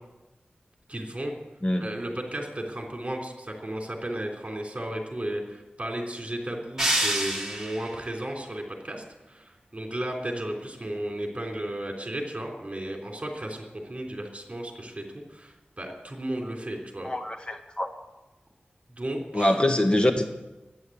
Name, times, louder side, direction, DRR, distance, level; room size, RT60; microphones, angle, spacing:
voice 1, 0.9-1.3 1.8-17.1 18.9-19.5, right 1 dB, 35° right, 1 dB, 3.4 m, -34 dB
sound 1, 6.8-8.0, right 1 dB, 10° right, 3.3 m, -27 dB
voice 2, 17.0-17.9 19.3-20.2, left 1 dB, 30° left, 5 dB, 1.2 m, -24 dB
11.0 x 10.0 x 8.6 m, 1.0 s
wide cardioid pair, 60°, 3 cm